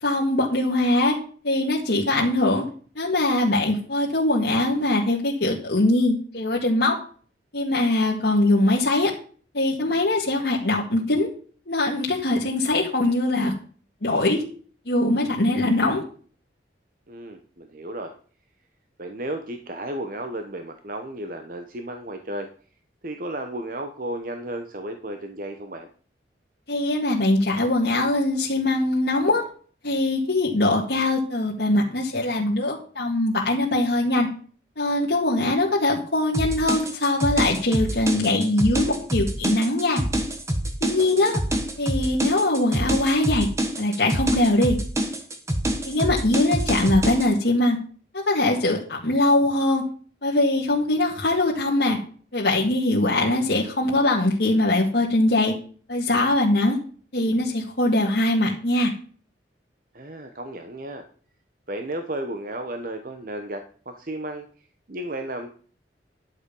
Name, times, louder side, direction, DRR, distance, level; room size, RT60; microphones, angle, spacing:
voice 1, 0.0-1.2 1.4-2.6 3.0-6.9 7.5-9.1 9.5-11.3 11.7-13.5 14.0-14.4 14.9-16.0 26.7-29.4 29.8-34.3 34.8-40.0 40.8-41.4 41.8-43.5 43.8-44.8 45.9-47.8 48.1-49.8 50.2-52.0 52.3-55.5 55.9-56.8 57.1-58.9, left 2 dB, 65° left, -4 dB, 2.0 m, -22 dB
voice 2, 17.1-18.1 19.0-22.5 23.0-25.9 41.0-41.4 59.9-61.0 61.7-64.5 64.9-65.5, right 1 dB, 45° right, 6 dB, 1.0 m, -33 dB
sound 1, 36.3-47.3, right 1 dB, 15° right, 1.2 m, -26 dB
11.5 x 7.2 x 5.4 m, 0.43 s
head